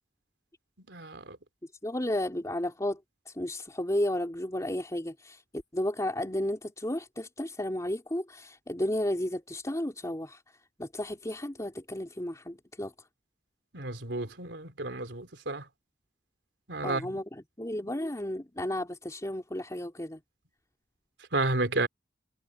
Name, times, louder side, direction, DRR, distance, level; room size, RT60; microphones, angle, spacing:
voice 1, 0.9-1.4 13.7-15.6 16.7-17.2 21.3-21.9, right 2 dB, 90° right, 3.4 m, -31 dB
voice 2, 1.8-3.0 3.3-10.4 10.8-12.9 16.8-20.2, left 1 dB, 20° left, 3.1 m, -33 dB
head